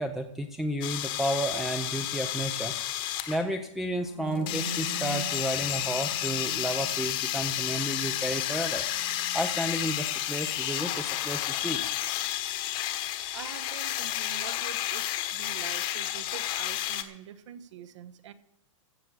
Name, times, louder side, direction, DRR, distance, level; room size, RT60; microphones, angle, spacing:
voice 1, 0.0-2.7 3.3-8.8 9.3-11.9, right 1 dB, ahead, 2 dB, 0.5 m, -32 dB
sound 1, 0.8-3.4 4.5-17.0, left 13 dB, 30° left, 1.1 m, -31 dB
sound 2, 4.0-11.8, right 2 dB, 85° left, 2.9 m, -44 dB
voice 2, 13.3-18.3, right 9 dB, 60° right, 11 dB, 1.2 m, -45 dB
15.0 x 6.8 x 7.4 m, 0.85 s
hypercardioid pair, 155°, 17 cm